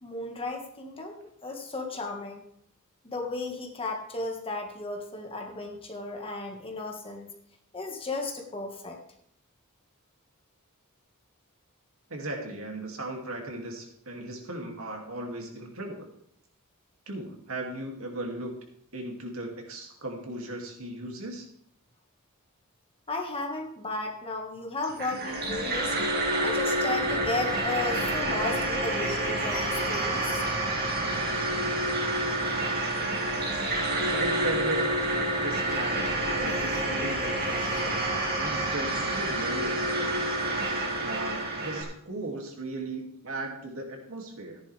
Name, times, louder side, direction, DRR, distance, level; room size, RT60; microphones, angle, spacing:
voice 1, 0.0-2.4 3.0-7.3 7.7-9.0 23.1-26.0 26.4-30.4, left 2 dB, 25° left, 2 dB, 1.7 m, -34 dB
voice 2, 12.1-16.1 17.1-18.5 18.9-21.5 34.0-35.0 35.4-40.2 40.6-44.6, right 2 dB, 70° right, 1 dB, 2.6 m, -37 dB
sound 1, 24.8-41.8, right 1 dB, 45° right, 2.2 m, -28 dB
sound 2, 27.0-38.1, equal, 5° left, 4.4 m, -44 dB
14.0 x 10.5 x 3.5 m, 0.72 s
head